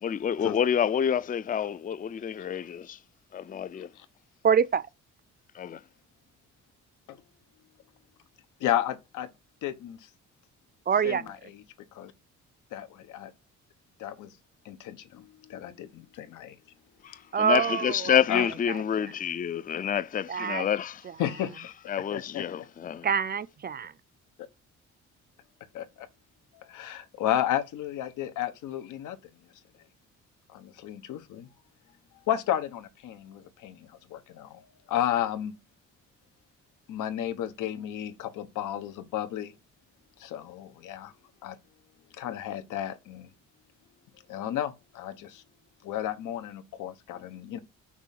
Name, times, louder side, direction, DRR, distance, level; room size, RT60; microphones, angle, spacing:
voice 1, 0.0-3.0 3.3-3.9 5.5-5.8 17.0-21.0 21.9-23.1, left 8 dB, 30° left, 0.5 m, -28 dB
voice 2, 4.4-4.8 10.9-11.3 17.3-18.8 20.3-20.7 23.0-23.9, right 7 dB, 30° right, 0.5 m, -26 dB
voice 3, 8.6-9.3 9.6-10.1 11.0-11.6 11.9-12.1 12.7-13.3 14.0-14.3 14.6-16.6 18.3-18.5 21.2-21.7 22.1-22.7 25.7-26.1 26.5-29.2 30.5-31.5 32.3-35.5 36.9-39.5 40.2-41.1 41.4-41.6 42.1-43.3 44.3-45.4 45.8-47.6, left 11 dB, 85° left, 1.1 m, -33 dB
6.1 x 3.6 x 5.8 m
cardioid pair, 90°, 30 cm